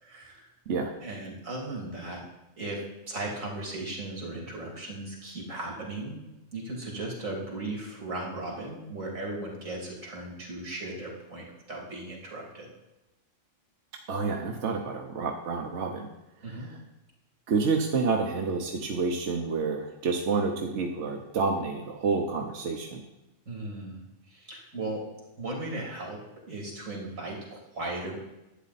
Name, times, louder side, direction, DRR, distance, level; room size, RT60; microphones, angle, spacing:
voice 1, 0.0-0.5 1.0-2.2 2.6-6.2 6.5-12.7 16.4-16.7 23.5-24.0 24.3-25.1 25.4-28.2, right 2 dB, 85° right, -1 dB, 3.1 m, -37 dB
voice 2, 14.1-16.1 16.5-16.6 17.5-23.0, right 4 dB, 65° right, 2 dB, 1.2 m, -29 dB
11.5 x 8.5 x 4.1 m, 0.97 s
omnidirectional pair, 1.3 m